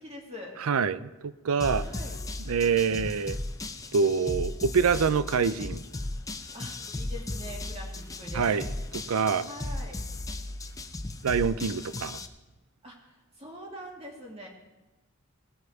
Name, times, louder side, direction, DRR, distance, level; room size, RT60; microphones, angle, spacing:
voice 1, 0.0-0.5 1.8-2.2 6.5-8.6 9.4-10.0 12.8-14.5, equal, 30° right, -1 dB, 2.6 m, -43 dB
voice 2, 0.6-1.9 2.5-3.4 3.9-5.8 8.3-8.6 9.1-9.5 11.2-12.2, right 5 dB, 85° right, 15 dB, 0.5 m, -25 dB
sound 1, 1.6-12.3, left 2 dB, 15° left, 0.5 m, -36 dB
18.0 x 7.8 x 4.7 m, 1.1 s
head